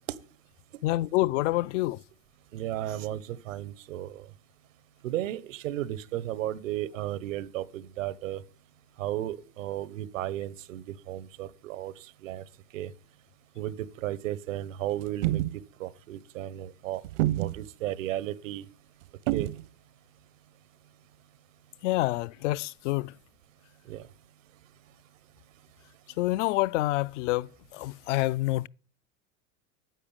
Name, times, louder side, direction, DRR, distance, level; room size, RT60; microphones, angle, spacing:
voice 1, 0.8-2.0 21.8-23.1 26.2-28.7, left 18 dB, 70° left, 0.5 m, -27 dB
voice 2, 2.5-4.2 5.0-8.4 9.0-11.9 12.2-12.4 12.7-12.9 13.6-13.7 14.0-15.4 15.8-17.0 17.4-18.6 19.3-19.5 23.9-24.0, right 13 dB, 90° right, 1.2 m, -34 dB
sound 1, 15.0-15.6 17.0-17.7 19.3-19.7, right 16 dB, 65° right, 0.8 m, -27 dB
10.0 x 8.9 x 8.8 m
supercardioid pair, 150°, 38 cm